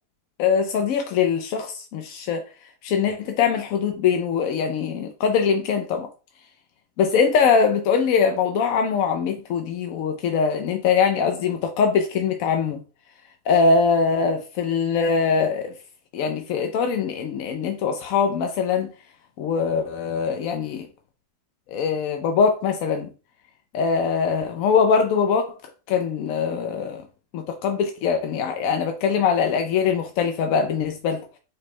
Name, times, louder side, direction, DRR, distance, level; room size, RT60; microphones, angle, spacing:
voice 1, 0.4-2.4 2.8-6.1 7.0-12.8 13.5-15.7 16.1-18.9 19.4-20.9 21.7-23.1 23.7-25.4 25.9-27.0 27.3-31.2, left 6 dB, 70° left, 0.9 m, -22 dB
5.2 x 2.2 x 4.2 m
omnidirectional pair, 1.7 m